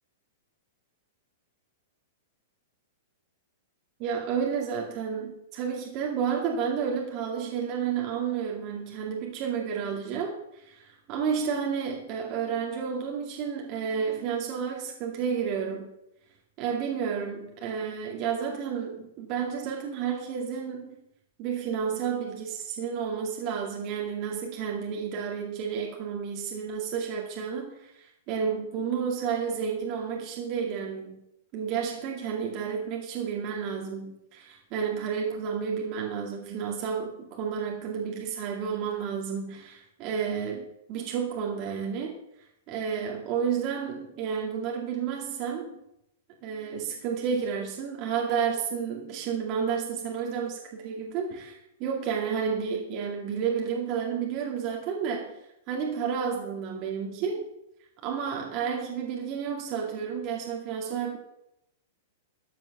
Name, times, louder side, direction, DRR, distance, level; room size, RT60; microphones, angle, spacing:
voice 1, 4.0-15.9 16.6-21.0 21.4-31.2 31.5-42.1 42.7-45.8 46.4-55.4 55.7-57.4 58.0-61.2, right 7 dB, 40° right, -1 dB, 2.3 m, -31 dB
13.5 x 7.5 x 6.7 m, 0.82 s
hypercardioid pair, 150°, 0 cm